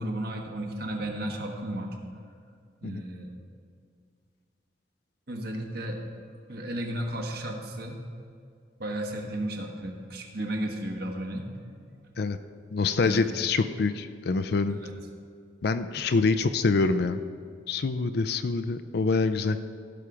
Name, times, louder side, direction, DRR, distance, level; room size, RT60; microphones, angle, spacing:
voice 1, 0.0-1.9 2.8-3.3 5.3-6.0 6.5-8.0 8.8-11.6 12.0-12.1 13.0-13.2 14.7-14.9 16.0-16.1, right 1 dB, 55° right, 1 dB, 1.4 m, -34 dB
voice 2, 12.7-14.8 15.6-17.2 17.7-19.6, left 4 dB, 60° left, 10 dB, 0.4 m, -25 dB
16.0 x 5.8 x 5.0 m, 2.2 s
head